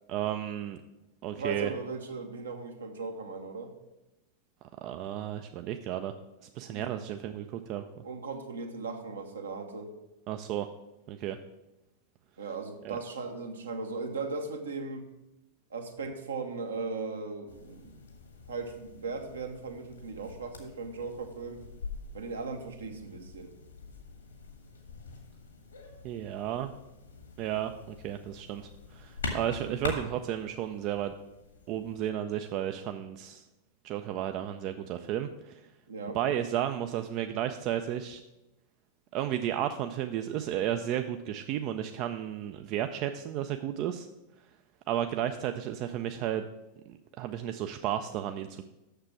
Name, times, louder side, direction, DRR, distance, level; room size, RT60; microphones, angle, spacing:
voice 1, 0.1-0.8 1.2-1.7 4.8-6.1 6.5-7.8 10.3-10.7 11.1-11.4 12.8-13.0 26.0-26.7 27.4-31.1 31.7-33.4 33.8-35.6 36.1-38.2 39.1-44.1 44.9-46.5 46.9-48.7, right 11 dB, 40° right, 8 dB, 0.4 m, -33 dB
voice 2, 1.4-3.7 6.7-7.0 8.0-9.9 12.4-15.1 15.7-18.0 18.5-21.6 22.1-23.5 29.6-29.8 35.9-36.2, right 4 dB, 70° right, 5 dB, 1.0 m, -38 dB
sound 1, 17.5-32.1, left 3 dB, 75° left, 1.5 m, -44 dB
6.7 x 6.7 x 5.8 m, 0.99 s
figure-of-eight pair, 90°, 0 cm